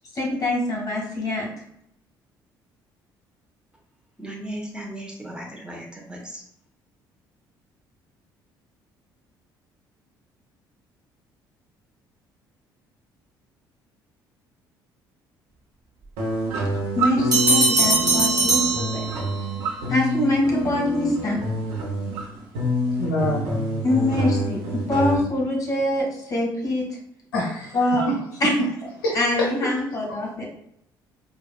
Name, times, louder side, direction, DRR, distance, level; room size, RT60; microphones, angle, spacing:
voice 1, 0.1-1.5 16.9-19.0 19.9-21.4 23.8-27.0 27.7-28.1 28.4-28.5 29.1-30.4, left 1 dB, 30° left, 1.3 m, -24 dB
voice 2, 4.2-6.4, right 1 dB, 10° right, 0.9 m, -36 dB
sound 1, 16.2-25.2, equal, 65° right, 0.7 m, -27 dB
sound 2, 17.3-19.5, right 2 dB, 35° right, 1.2 m, -21 dB
voice 3, 23.0-23.6 27.3-28.2 28.6-28.7 29.0-29.7 30.1-30.2, left 1 dB, 75° left, 0.5 m, -26 dB
4.5 x 2.3 x 2.3 m
figure-of-eight pair, 50°, 11 cm